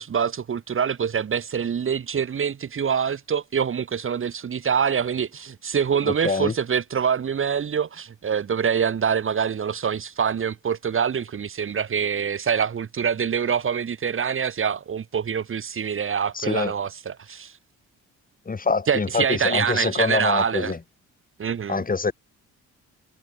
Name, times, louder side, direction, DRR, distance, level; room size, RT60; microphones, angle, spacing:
voice 1, 0.0-17.5 18.9-20.7 21.4-21.8, right 7 dB, 45° right, 1.7 m, -25 dB
voice 2, 6.0-6.5 16.3-16.7 18.5-20.8 21.7-22.1, left 4 dB, 30° left, 4.2 m, -25 dB
cardioid pair, 90°, 30 cm